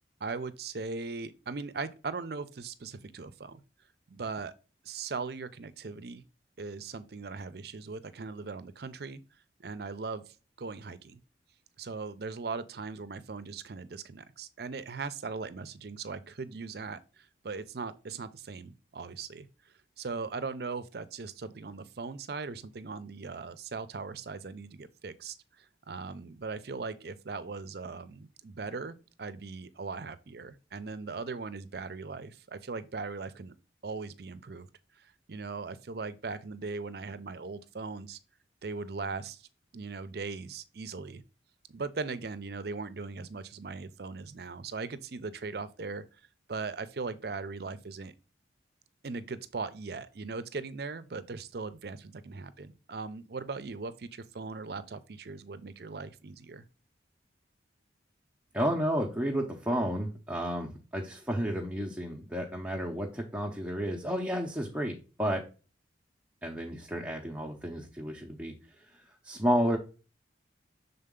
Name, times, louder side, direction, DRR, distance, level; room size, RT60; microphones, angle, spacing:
voice 1, 0.2-3.6 4.1-4.5 4.8-6.2 6.6-9.2 9.6-11.2 11.8-19.5 20.0-33.5 33.8-34.7 35.0-38.2 38.6-39.5 39.7-41.2 41.7-46.0 46.5-48.1 49.0-56.6, right 4 dB, 55° right, 0.5 m, -39 dB
voice 2, 58.5-65.4 66.4-69.8, equal, 5° right, 0.6 m, -32 dB
6.6 x 3.9 x 3.6 m
head